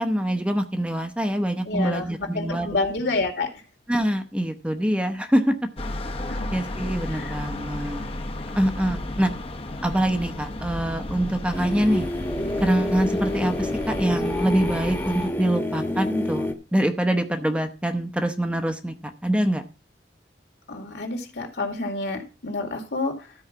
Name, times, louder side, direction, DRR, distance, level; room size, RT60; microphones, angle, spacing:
voice 1, 0.0-2.7 3.9-5.6 6.5-8.1 8.5-9.3 9.8-12.1 12.6-19.6, right 1 dB, 5° right, 7 dB, 0.8 m, -24 dB
voice 2, 1.7-3.5 6.3-6.5 7.1-7.3 20.7-23.3, left 3 dB, 70° left, 4 dB, 2.3 m, -29 dB
sound 1, 5.8-15.3, left 1 dB, 35° left, 0.8 m, -33 dB
sound 2, 11.5-16.5, left 1 dB, 15° left, 1.1 m, -28 dB
13.0 x 4.7 x 5.9 m, 0.32 s
head